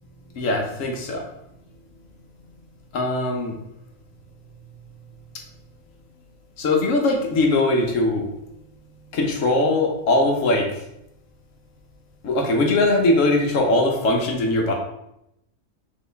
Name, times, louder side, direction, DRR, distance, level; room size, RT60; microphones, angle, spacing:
voice 1, 0.4-1.2 2.9-3.5 6.6-8.3 9.1-10.6 12.2-14.7, left 2 dB, 70° left, 1 dB, 1.1 m, -20 dB
4.2 x 3.0 x 3.3 m, 0.82 s
omnidirectional pair, 1.4 m